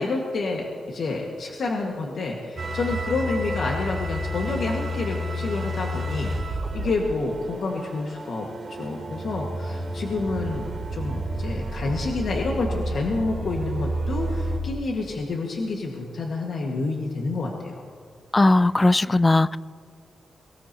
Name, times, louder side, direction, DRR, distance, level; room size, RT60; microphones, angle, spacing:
voice 1, 0.0-17.9, left 3 dB, 65° left, -1 dB, 1.8 m, -29 dB
sound 1, 2.6-14.6, right 1 dB, 35° right, 2.7 m, -30 dB
voice 2, 18.3-19.6, left 2 dB, 20° left, 17 dB, 0.4 m, -18 dB
24.0 x 17.5 x 3.0 m, 2.1 s
wide cardioid pair, 110°, 0 cm